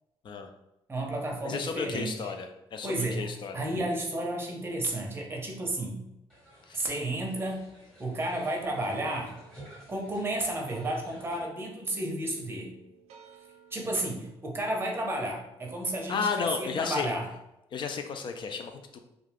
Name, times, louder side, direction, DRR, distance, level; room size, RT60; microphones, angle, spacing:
voice 1, 0.9-2.3 2.8-6.0 6.7-7.7 8.0-9.4 9.9-12.8 13.7-17.3, right 1 dB, 20° right, 0 dB, 0.7 m, -32 dB
voice 2, 1.4-3.7 6.7-6.8 16.1-17.1 17.7-19.0, left 5 dB, 50° left, 6 dB, 0.4 m, -33 dB
sound 1, 6.3-11.4, right 1 dB, 10° left, 1.2 m, -54 dB
sound 2, 8.1-14.6, right 7 dB, 85° right, 0.4 m, -56 dB
2.4 x 2.3 x 3.3 m, 0.89 s
cardioid pair, 115°, 10 cm